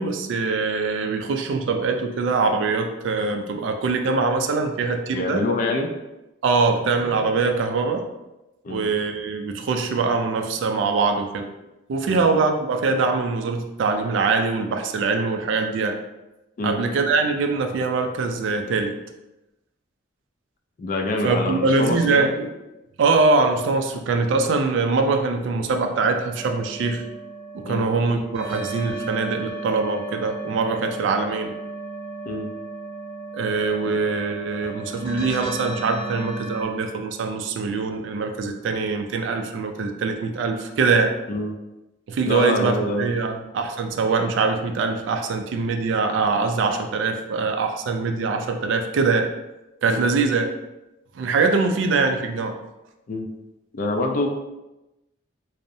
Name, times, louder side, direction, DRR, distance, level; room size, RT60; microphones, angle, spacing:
voice 1, 0.0-5.4 6.4-8.1 8.7-11.5 11.9-16.0 16.6-19.0 21.2-22.5 23.0-27.1 27.5-31.5 33.3-41.1 42.1-49.3 49.8-50.5 51.1-52.6, right 4 dB, 75° right, 5 dB, 0.3 m, -23 dB
voice 2, 5.1-5.9 8.6-8.8 12.0-12.3 16.6-16.8 20.8-22.3 27.7-27.9 32.2-32.5 33.9-34.0 41.3-41.5 42.2-43.1 49.8-50.0 53.1-53.3 53.7-54.3, left 2 dB, 45° left, 3 dB, 0.3 m, -25 dB
sound 1, 26.3-36.6, right 3 dB, 25° right, 0.6 m, -35 dB
2.6 x 2.0 x 2.5 m, 0.98 s
head